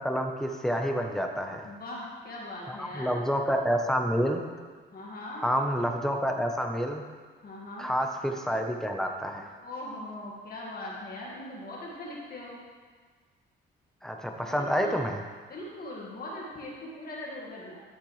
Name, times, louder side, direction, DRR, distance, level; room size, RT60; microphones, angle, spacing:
voice 1, 0.0-1.7 2.7-4.4 5.4-7.0 7.8-9.5 14.0-15.2, equal, ahead, 3 dB, 1.0 m, -28 dB
voice 2, 1.6-3.2 4.9-5.4 7.4-7.9 9.6-12.6 14.3-15.0 15.5-17.8, left 1 dB, 50° left, -4 dB, 2.0 m, -40 dB
11.5 x 6.8 x 3.3 m, 1.5 s
cardioid pair, 90°, 20 cm